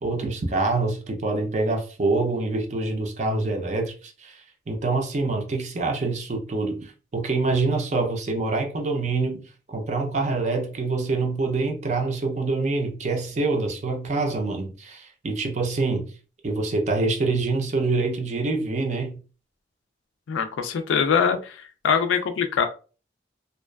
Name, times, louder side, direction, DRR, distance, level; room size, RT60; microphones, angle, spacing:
voice 1, 0.0-16.1 16.4-19.2, right 3 dB, 40° right, 0.4 m, -26 dB
voice 2, 20.3-22.7, left 6 dB, 90° left, 0.3 m, -23 dB
2.4 x 2.2 x 2.2 m
head